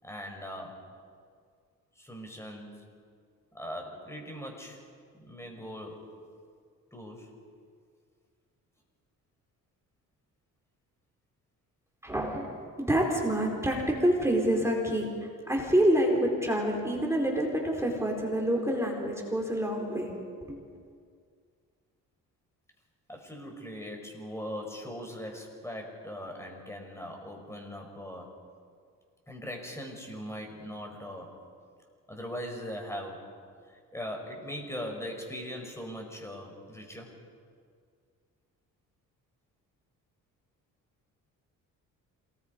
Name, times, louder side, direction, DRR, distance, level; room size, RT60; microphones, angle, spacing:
voice 1, 0.0-0.9 2.0-2.9 3.5-4.8 5.2-6.1 6.9-7.3 23.1-28.4 29.3-31.4 32.1-33.3 33.6-37.1, equal, 10° left, 2 dB, 5.3 m, -40 dB
voice 2, 12.0-20.1 20.4-20.6, right 1 dB, 10° right, 0 dB, 4.4 m, -27 dB
27.0 x 20.0 x 5.3 m, 2.1 s
cardioid pair, 95°, 33 cm